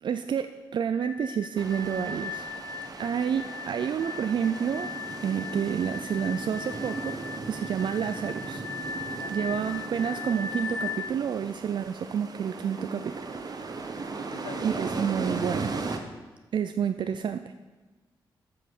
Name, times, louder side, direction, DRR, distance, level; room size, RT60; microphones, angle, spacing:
voice 1, 0.0-2.5 3.0-4.9 5.2-7.1 7.5-8.6 9.3-13.3 14.6-15.7 16.5-17.5, right 8 dB, 65° right, 9 dB, 0.4 m, -29 dB
sound 1, 0.9-11.1, left 4 dB, 30° left, 0.5 m, -38 dB
sound 2, 1.6-16.0, right 3 dB, 50° right, 1.0 m, -37 dB
voice 2, 2.8-3.4 9.1-9.6 13.7-14.9, left 7 dB, 75° left, 10 dB, 0.6 m, -47 dB
8.5 x 6.0 x 6.6 m, 1.2 s
cardioid pair, 70°, 9 cm